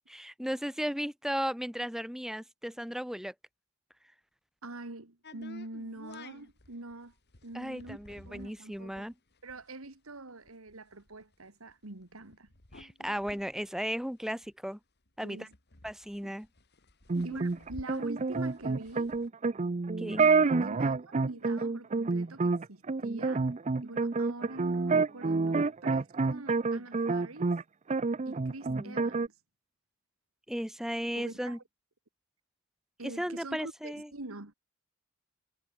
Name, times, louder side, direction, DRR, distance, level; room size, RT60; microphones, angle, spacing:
voice 1, 0.1-3.3 7.5-9.1 12.7-14.8 15.2-15.5 15.8-16.5 17.1-17.4 20.0-20.3 28.7-29.0 30.5-31.6 33.0-34.1, equal, ahead, 2.6 m, -35 dB
voice 2, 4.6-7.1 7.4-8.0 8.3-9.1 9.4-12.5 15.2-15.5 17.2-19.2 20.4-23.5 23.8-27.5 28.3-29.3 31.1-31.6 33.0-34.5, right 2 dB, 90° right, 2.2 m, -44 dB
sound 1, 5.2-14.7 15.1-15.2 15.3-19.3, left 2 dB, 55° left, 3.2 m, -53 dB
sound 2, 17.1-27.6 27.9-29.3, right 4 dB, 35° right, 0.6 m, -28 dB
head